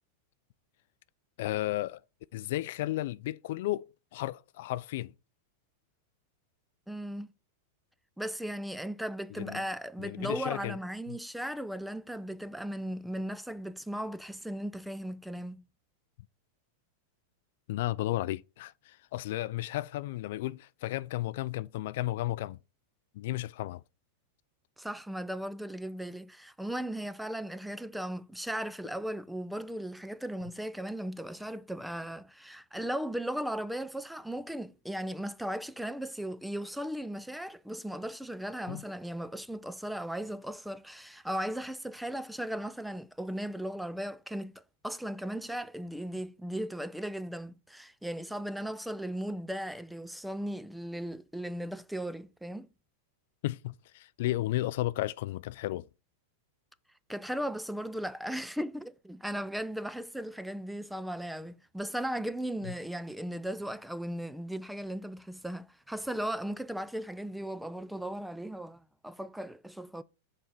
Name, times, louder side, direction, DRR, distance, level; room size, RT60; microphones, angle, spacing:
voice 1, 1.4-2.0 2.3-3.9 4.1-5.1 9.4-9.6 10.0-10.8 11.1-11.2 17.7-22.6 23.1-23.8 38.7-38.8 53.4-55.9 62.6-62.7, left 16 dB, 65° left, 0.3 m, -33 dB
voice 2, 6.9-7.3 8.2-15.6 24.8-52.7 57.1-70.0, right 1 dB, ahead, 0.4 m, -37 dB
6.4 x 4.4 x 5.3 m
hypercardioid pair, 120°, 0 cm